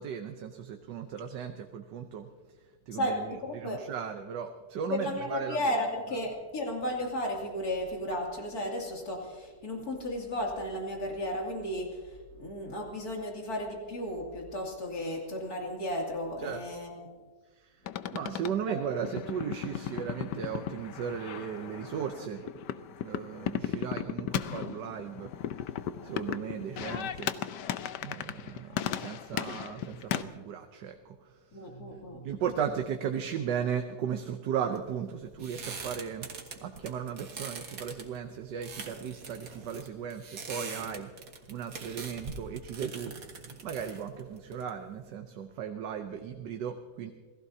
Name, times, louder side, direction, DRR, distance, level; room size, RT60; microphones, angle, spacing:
voice 1, 0.0-5.8 16.4-16.7 17.4-22.5 23.0-25.8 26.0-27.3 28.0-31.7 32.2-36.3 36.6-41.1 41.5-43.2 43.6-47.1, right 8 dB, 90° right, 5 dB, 1.5 m, -36 dB
voice 2, 2.9-3.8 4.9-12.0 12.4-16.9 31.5-32.3, left 1 dB, 65° left, -1 dB, 3.3 m, -34 dB
sound 1, 17.9-30.2, left 10 dB, 85° left, 1.3 m, -36 dB
sound 2, 34.7-45.1, right 4 dB, 55° right, 1.8 m, -43 dB
27.5 x 18.0 x 2.8 m, 1.4 s
omnidirectional pair, 1.8 m